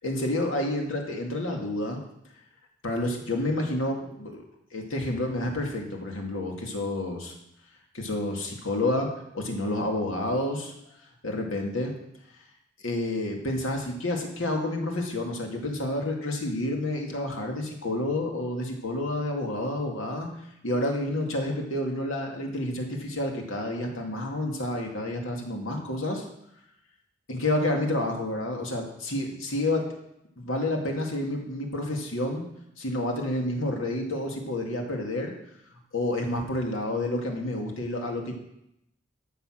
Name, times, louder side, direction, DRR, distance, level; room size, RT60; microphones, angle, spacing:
voice 1, 0.0-2.0 2.8-4.4 4.7-7.3 7.9-10.7 11.2-11.9 12.8-20.3 20.6-26.2 27.3-29.9 30.4-32.4 32.8-35.3 35.9-38.3, left 1 dB, 85° left, 1 dB, 2.3 m, -29 dB
13.0 x 7.0 x 6.3 m, 0.80 s
head